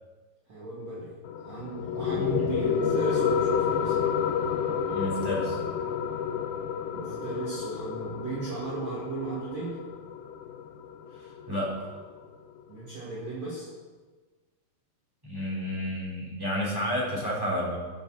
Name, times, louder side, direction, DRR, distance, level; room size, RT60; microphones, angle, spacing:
voice 1, 0.5-1.1 1.4-4.0 6.9-9.8 12.7-13.7, right 2 dB, 50° right, -7 dB, 2.6 m, -35 dB
sound 1, 1.3-12.3, left 7 dB, 80° left, 2.8 m, -30 dB
voice 2, 2.1-2.5 4.9-5.6 11.5-11.7 15.2-17.8, equal, 5° right, -5 dB, 3.7 m, -31 dB
13.5 x 7.1 x 6.4 m, 1.3 s
omnidirectional pair, 5.2 m